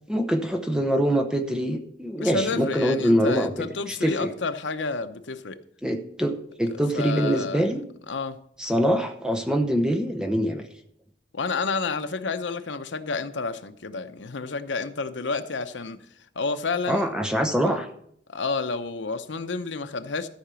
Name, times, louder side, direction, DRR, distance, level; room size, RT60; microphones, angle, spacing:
voice 1, 0.1-4.3 5.8-7.8 8.6-10.7 16.9-17.9, equal, 5° right, 5 dB, 0.8 m, -24 dB
voice 2, 2.2-5.6 6.9-7.7 8.1-8.4 11.3-16.0 16.4-17.1 17.6-17.8 18.3-20.3, left 4 dB, 80° left, 9 dB, 0.7 m, -30 dB
13.5 x 5.0 x 6.9 m, 0.68 s
head